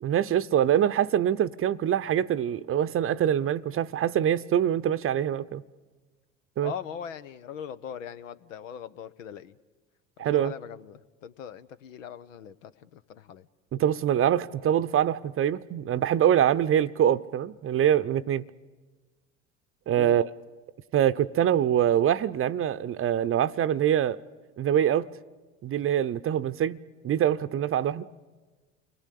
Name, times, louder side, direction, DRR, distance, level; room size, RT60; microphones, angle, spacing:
voice 1, 0.0-5.6 6.6-6.7 10.2-10.5 13.7-18.4 19.9-20.3 20.9-24.2 24.6-25.1 25.6-26.8 27.0-28.1, right 10 dB, 35° right, 0.8 m, -24 dB
voice 2, 6.6-9.6 10.2-13.5 20.0-20.3, left 8 dB, 75° left, 0.9 m, -41 dB
29.0 x 21.0 x 8.5 m
figure-of-eight pair, 65°, 39 cm